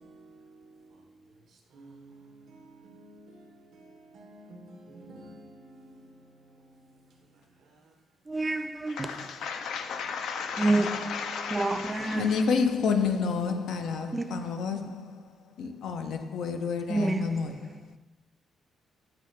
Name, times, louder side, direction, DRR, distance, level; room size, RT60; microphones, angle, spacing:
voice 1, 0.0-8.1, right 1 dB, 75° right, 0.9 m, -52 dB
voice 2, 8.3-9.1 10.6-12.3 14.1-14.4 16.9-17.4, right 2 dB, 20° right, 0.3 m, -28 dB
voice 3, 8.9-18.0, left 5 dB, 75° left, 0.5 m, -31 dB
6.0 x 2.8 x 3.2 m
cardioid pair, 90°, 0 cm